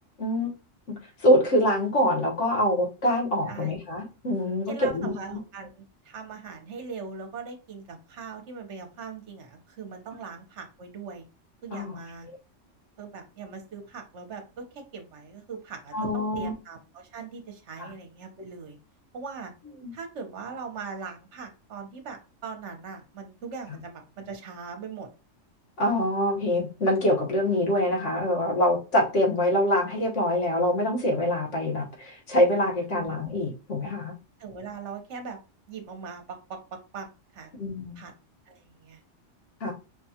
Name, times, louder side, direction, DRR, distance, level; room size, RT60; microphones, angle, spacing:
voice 1, 0.2-0.5 1.2-5.4 11.7-12.0 15.9-16.5 17.8-17.9 19.8-19.9 25.8-34.1 37.6-38.0 39.6-39.7, left 1 dB, 70° left, -2 dB, 1.6 m, -25 dB
voice 2, 4.7-11.3 11.6-12.3 13.0-18.8 19.1-19.5 19.9-25.1 32.9-33.1 34.4-35.4 35.7-37.1 37.3-37.6 38.0-38.1 38.5-39.0, right 5 dB, 65° right, 4 dB, 1.2 m, -40 dB
5.2 x 2.3 x 2.8 m, 0.31 s
omnidirectional pair, 1.3 m